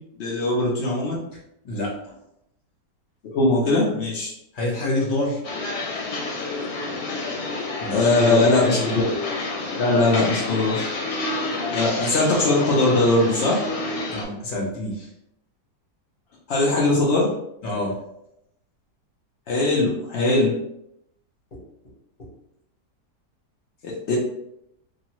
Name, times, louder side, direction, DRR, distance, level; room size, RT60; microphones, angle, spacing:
voice 1, 0.2-1.2 3.3-4.3 7.9-8.8 9.8-10.8 11.7-13.6 16.5-17.3 19.5-20.5 23.8-24.2, left 2 dB, 85° left, -4 dB, 0.5 m, -20 dB
voice 2, 1.6-2.2 4.5-5.4 7.8-9.0 10.1-10.3 14.1-15.1 17.6-18.0 21.5-21.6 22.2-22.3, left 1 dB, 40° left, -4 dB, 0.7 m, -27 dB
sound 1, 5.4-14.2, left 3 dB, 65° left, 1.0 m, -29 dB
2.8 x 2.3 x 2.9 m, 0.80 s
omnidirectional pair, 1.9 m